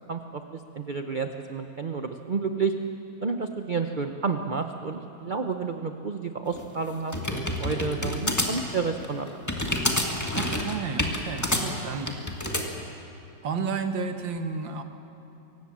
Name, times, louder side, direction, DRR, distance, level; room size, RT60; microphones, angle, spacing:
voice 1, 0.1-0.4 0.7-2.7 3.2-9.4, right 5 dB, 50° right, 6 dB, 0.6 m, -30 dB
sound 1, 6.5-12.7, left 1 dB, 10° left, 1.8 m, -28 dB
voice 2, 10.3-12.3 13.4-14.8, right 5 dB, 80° right, 7 dB, 2.0 m, -32 dB
24.5 x 18.5 x 7.4 m, 3.0 s
omnidirectional pair, 2.0 m